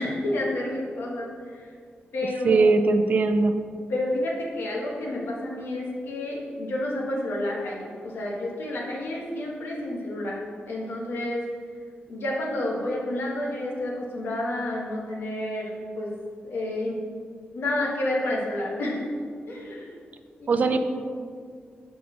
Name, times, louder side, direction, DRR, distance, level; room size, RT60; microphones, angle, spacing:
voice 1, 0.0-1.7 2.1-2.8 3.9-10.4 10.7-11.4 12.1-16.1 16.4-17.0 17.5-19.1 19.5-19.9 20.4-20.8, left 1 dB, 75° left, -2 dB, 1.4 m, -30 dB
voice 2, 2.4-3.5 20.5-20.8, right 3 dB, 45° right, 8 dB, 0.4 m, -20 dB
6.2 x 5.5 x 4.3 m, 2.1 s
wide cardioid pair, 165°, 4 cm